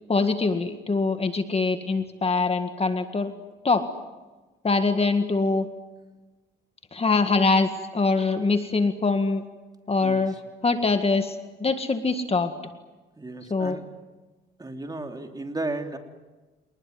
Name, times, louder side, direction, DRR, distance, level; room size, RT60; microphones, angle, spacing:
voice 1, 0.1-3.3 3.6-3.9 4.6-5.7 6.9-9.5 9.9-12.5 13.5-13.8, left 3 dB, 30° left, 8 dB, 1.9 m, -23 dB
voice 2, 13.2-13.8 14.6-16.0, right 2 dB, 20° right, 4 dB, 3.2 m, -34 dB
27.5 x 20.0 x 9.5 m, 1.2 s
cardioid pair, 90°, 20 cm